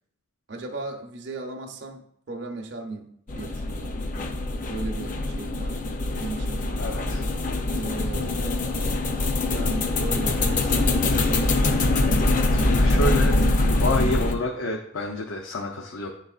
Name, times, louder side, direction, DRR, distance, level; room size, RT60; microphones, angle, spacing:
voice 1, 0.5-4.1 4.7-5.8 6.2-6.8 7.7-9.0 9.5-11.6, right 2 dB, 55° right, 0.7 m, -36 dB
sound 1, 3.3-14.3, left 2 dB, 40° left, 0.5 m, -23 dB
voice 2, 6.8-7.2 12.5-13.4 13.7-16.1, left 1 dB, 80° left, 0.6 m, -29 dB
10.5 x 4.0 x 2.4 m
head